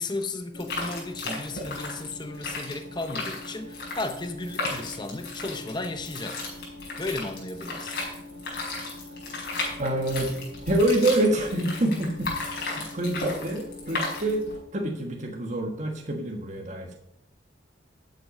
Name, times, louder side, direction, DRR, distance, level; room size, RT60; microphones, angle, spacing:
voice 1, 0.0-6.4 7.0-8.0, left 2 dB, 25° left, 0.8 m, -34 dB
sound 1, 0.5-14.6, left 2 dB, 55° left, 5.1 m, -35 dB
voice 2, 9.8-10.3 10.7-12.3 12.7-14.5 14.7-16.9, right 1 dB, 40° right, 1.4 m, -26 dB
12.5 x 7.9 x 5.4 m
head